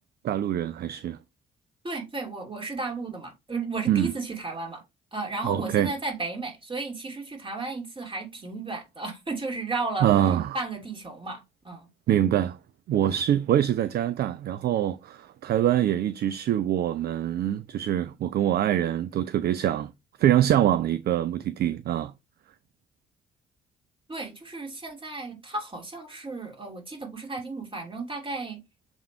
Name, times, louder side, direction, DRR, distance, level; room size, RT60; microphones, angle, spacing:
voice 1, 0.2-1.2 3.9-4.1 5.4-5.9 10.0-10.6 12.1-12.6 12.9-19.9 20.2-22.1, right 11 dB, 50° right, 0.5 m, -24 dB
voice 2, 1.8-4.8 5.1-10.1 10.5-11.9 24.1-28.6, right 3 dB, 25° right, 3.2 m, -34 dB
7.2 x 3.6 x 4.4 m
figure-of-eight pair, 40°, 21 cm